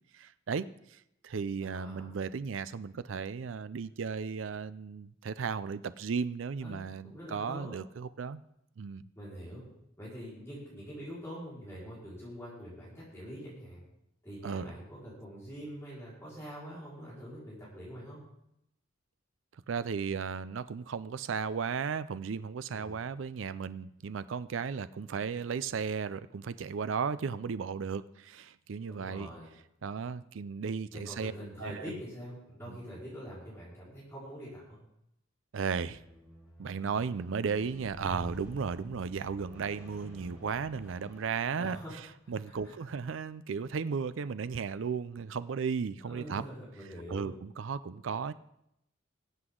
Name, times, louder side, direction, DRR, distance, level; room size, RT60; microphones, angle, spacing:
voice 1, 0.1-8.4 8.8-9.0 14.4-14.7 19.7-29.3 29.8-31.3 31.6-32.0 32.7-32.8 35.5-36.0 36.6-41.8 42.3-46.4 47.1-48.3, right 6 dB, 80° right, 15 dB, 0.4 m, -35 dB
voice 2, 1.6-2.1 6.6-7.7 9.1-9.6 10.0-13.9 14.2-18.2 22.7-23.0 28.9-29.5 30.9-34.8 41.5-41.9 42.4-42.7 46.0-47.3, equal, 15° left, -8 dB, 4.6 m, -44 dB
Squeak, 35.7-42.0 42.8-42.9, equal, 5° right, 2.9 m, -49 dB
20.0 x 8.0 x 3.8 m, 0.80 s
head